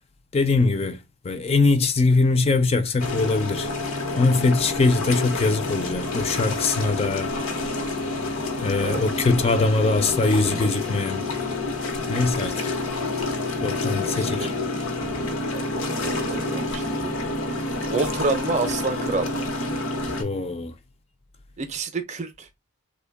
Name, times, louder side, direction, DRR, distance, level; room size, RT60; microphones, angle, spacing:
voice 1, 0.3-1.0 1.2-3.7 4.2-7.6 8.6-11.3 12.1-12.8 13.6-14.5 20.2-20.7, left 3 dB, 30° left, 0.3 m, -22 dB
sound 1, 3.0-20.2, left 2 dB, 85° left, 0.9 m, -28 dB
voice 2, 14.0-14.7 15.5-17.1 17.9-19.4 21.6-22.5, right 3 dB, 35° right, 0.5 m, -29 dB
3.3 x 2.2 x 3.3 m
head